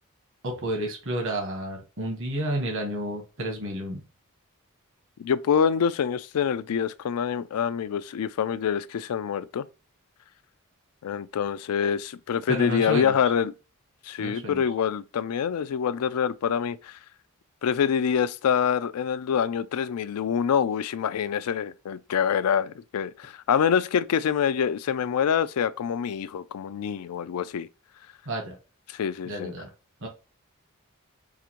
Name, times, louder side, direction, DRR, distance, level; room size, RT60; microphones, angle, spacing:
voice 1, 0.4-4.0 12.5-13.3 14.2-14.6 28.3-28.6 29.3-29.7 30.0-30.1, right 1 dB, 60° right, 1.2 m, -31 dB
voice 2, 5.2-9.7 11.0-13.5 14.1-16.9 17.6-27.7 28.9-29.5, left 7 dB, 85° left, 0.4 m, -26 dB
4.8 x 2.5 x 2.9 m
head